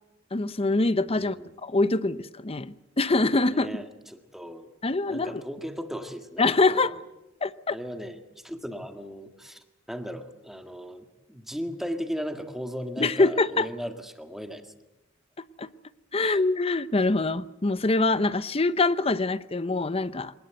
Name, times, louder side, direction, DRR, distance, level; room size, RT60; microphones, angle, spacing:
voice 1, 0.3-1.4 1.6-3.7 4.8-5.4 6.4-6.9 7.4-7.7 13.0-13.7 15.6-15.7 16.1-20.3, left 3 dB, 30° left, 0.8 m, -24 dB
voice 2, 1.1-1.5 3.5-4.7 5.0-7.0 7.7-14.7 16.2-16.4, equal, ahead, 1.8 m, -37 dB
25.0 x 19.5 x 8.1 m
head